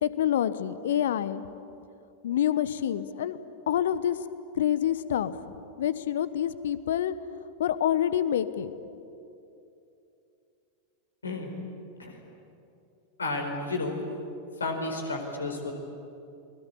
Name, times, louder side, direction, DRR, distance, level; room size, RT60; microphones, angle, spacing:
voice 1, 0.0-1.4 2.2-3.4 3.7-4.2 4.5-7.1 7.6-8.7, left 10 dB, 60° left, 14 dB, 1.1 m, -27 dB
voice 2, 13.2-13.9 14.6-15.7, left 2 dB, 75° left, 3 dB, 4.6 m, -32 dB
28.0 x 21.5 x 8.5 m, 2.7 s
figure-of-eight pair, 90°, 0 cm